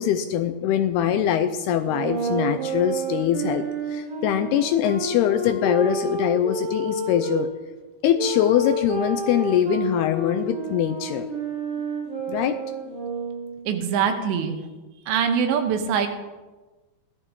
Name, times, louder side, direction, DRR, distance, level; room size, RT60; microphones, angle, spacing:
voice 1, 0.0-3.6 3.9-7.5 8.0-11.3 12.3-12.6, left 10 dB, 80° left, 9 dB, 2.4 m, -23 dB
sound 1, 1.8-7.4 8.1-13.7, right 2 dB, 65° right, 6.2 m, -29 dB
voice 2, 13.7-14.6 15.1-16.1, right 7 dB, 80° right, 6 dB, 3.4 m, -23 dB
17.5 x 12.5 x 3.7 m, 1.2 s
omnidirectional pair, 5.1 m